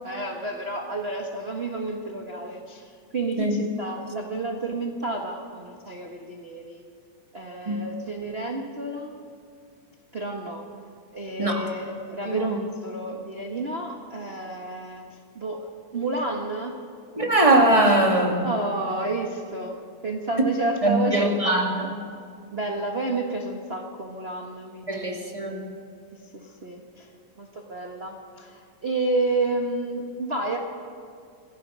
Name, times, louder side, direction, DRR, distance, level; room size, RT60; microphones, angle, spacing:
voice 1, 0.0-6.8 7.3-9.1 10.1-10.7 11.1-16.8 18.4-21.4 22.5-25.3 26.3-27.1 27.4-30.6, right 2 dB, 40° right, 1 dB, 0.8 m, -30 dB
voice 2, 17.2-18.5 20.8-22.0 24.9-25.6, right 1 dB, 15° right, 1 dB, 1.6 m, -21 dB
27.0 x 16.0 x 6.3 m, 2.3 s
omnidirectional pair, 3.5 m